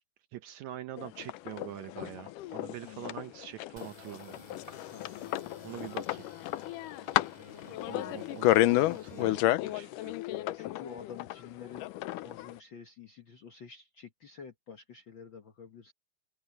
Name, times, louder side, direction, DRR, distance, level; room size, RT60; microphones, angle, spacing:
voice 1, 0.3-4.8 5.6-6.3 7.6-10.2, right 13 dB, 75° right, 1.8 m, -44 dB
sound 1, 1.0-12.5, left 16 dB, 85° left, 2.2 m, -31 dB
voice 2, 2.5-3.1 4.9-5.9 7.2-8.2 9.9-11.9 12.2-15.9, left 6 dB, 60° left, 1.3 m, -50 dB
sound 2, 3.8-9.2, left 1 dB, 10° left, 6.9 m, -55 dB
open air
omnidirectional pair, 3.8 m